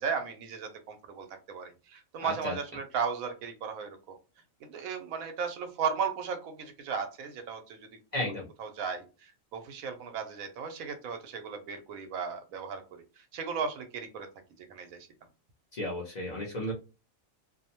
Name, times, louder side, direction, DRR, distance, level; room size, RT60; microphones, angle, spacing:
voice 1, 0.0-4.1 4.6-7.9 8.6-14.3 14.6-15.1, right 6 dB, 85° right, 7 dB, 1.0 m, -36 dB
voice 2, 2.2-2.5 8.1-8.5 15.7-16.7, left 1 dB, 40° left, -3 dB, 0.7 m, -33 dB
2.6 x 2.1 x 2.8 m, 0.31 s
omnidirectional pair, 1.4 m